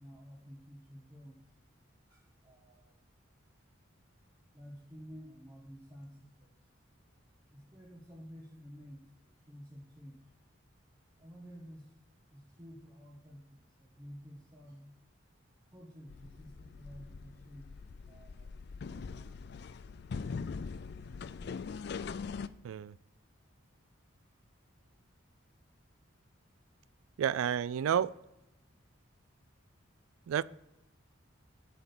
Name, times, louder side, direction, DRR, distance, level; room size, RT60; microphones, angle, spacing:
voice 1, 0.0-1.4 2.1-3.0 4.5-6.8 7.5-10.3 11.2-11.9 12.3-14.9 15.7-17.7 18.1-18.5 18.8-19.4 19.7-20.2 27.3-27.5, equal, 20° right, 1.0 m, -52 dB
sound 1, 16.1-22.5, left 5 dB, 50° left, 0.3 m, -42 dB
voice 2, 27.2-28.1 30.3-30.4, right 9 dB, 80° right, 0.3 m, -30 dB
8.2 x 6.0 x 6.8 m
head